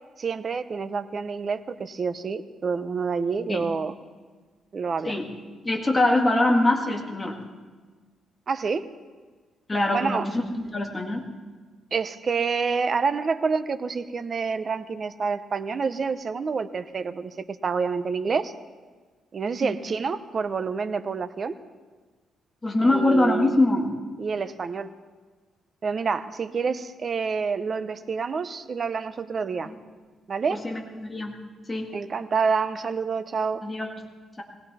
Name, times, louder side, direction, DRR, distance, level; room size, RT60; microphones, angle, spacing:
voice 1, 0.2-3.9 4.7-5.2 8.5-8.9 9.9-10.3 11.9-17.3 17.6-18.5 19.3-21.6 22.9-23.6 24.2-24.9 25.8-29.7 30.3-30.6 31.9-33.6, right 5 dB, 35° right, 11 dB, 0.7 m, -28 dB
voice 2, 5.6-7.4 9.7-11.3 19.6-19.8 22.6-23.9 29.6-29.7 30.5-31.3 31.7-31.9 33.6-33.9, left 2 dB, 15° left, 0 dB, 1.9 m, -23 dB
20.0 x 17.0 x 4.2 m, 1.4 s
cardioid pair, 155°, 0 cm